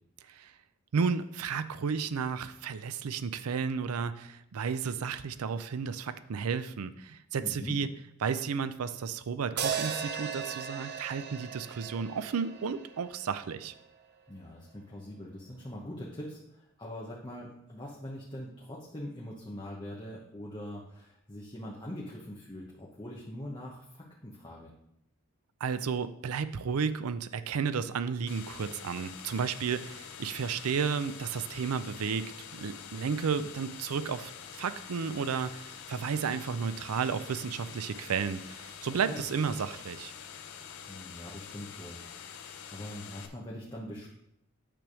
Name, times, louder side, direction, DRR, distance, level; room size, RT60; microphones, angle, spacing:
voice 1, 0.9-7.9 8.2-13.7 25.6-34.3 34.6-40.1, right 6 dB, 90° right, 13 dB, 0.5 m, -32 dB
voice 2, 7.4-7.8 14.3-24.7 39.1-39.2 40.9-42.0 42.3-44.1, left 1 dB, 20° left, -3 dB, 1.0 m, -43 dB
sound 1, 9.6-13.8, right 7 dB, 50° right, 0.7 m, -37 dB
sound 2, 28.3-43.3, left 7 dB, 70° left, 0.8 m, -46 dB
8.9 x 3.5 x 6.1 m, 0.80 s
head